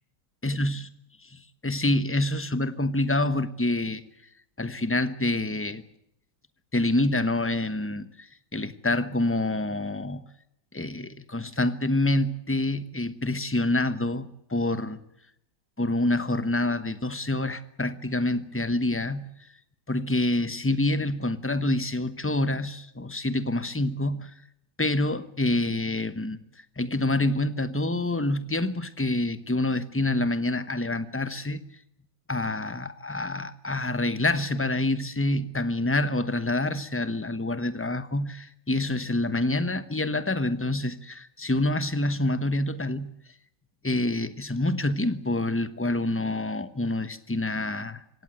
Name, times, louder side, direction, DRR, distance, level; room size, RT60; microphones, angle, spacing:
voice 1, 0.4-0.9 1.6-4.0 4.6-5.8 6.7-10.2 10.7-15.0 15.8-19.3 19.9-24.3 24.8-26.4 26.8-31.6 32.3-43.1 43.8-48.0, left 2 dB, 10° left, 0.8 m, -27 dB
23.5 x 17.5 x 9.1 m
omnidirectional pair, 1.8 m